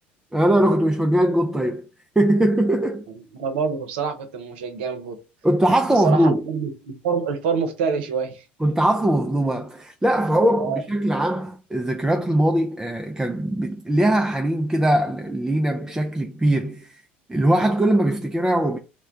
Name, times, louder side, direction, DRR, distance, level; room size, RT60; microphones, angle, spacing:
voice 1, 0.3-1.8 2.2-3.0 5.4-6.4 8.6-17.0 17.3-18.8, right 1 dB, 10° right, 0.4 m, -21 dB
voice 2, 3.3-5.2 5.9-8.5 10.6-10.8, right 6 dB, 75° right, 0.7 m, -26 dB
2.2 x 2.2 x 3.7 m
hypercardioid pair, 70°, 6 cm